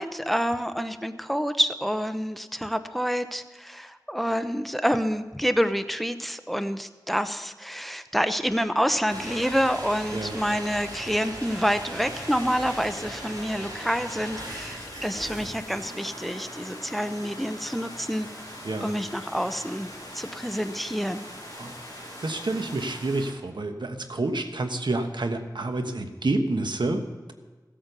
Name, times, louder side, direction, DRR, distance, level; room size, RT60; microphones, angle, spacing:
voice 1, 0.0-18.3 18.8-19.9 20.1-21.2, equal, ahead, 10 dB, 0.8 m, -27 dB
sound 1, 9.1-23.3, right 1 dB, 55° right, 5.2 m, -40 dB
Stream, 12.0-22.9, left 2 dB, 50° left, 1.2 m, -45 dB
voice 2, 21.6-27.3, right 2 dB, 80° right, 6 dB, 1.2 m, -29 dB
16.0 x 8.8 x 6.7 m, 1.3 s
wide cardioid pair, 40°, 8 cm